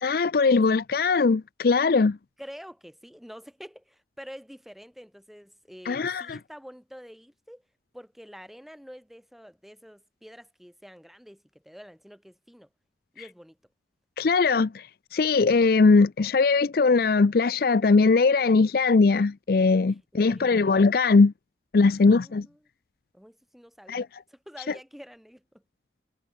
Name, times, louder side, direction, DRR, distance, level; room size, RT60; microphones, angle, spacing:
voice 1, 0.0-2.2 5.9-6.4 14.2-21.3 21.7-22.5 23.9-24.1, left 4 dB, 55° left, 0.5 m, -20 dB
voice 2, 2.4-7.6 7.9-12.7 13.1-13.6 19.8-20.0 20.3-20.5 21.9-22.6 23.1-25.6, equal, ahead, 5.9 m, -47 dB
head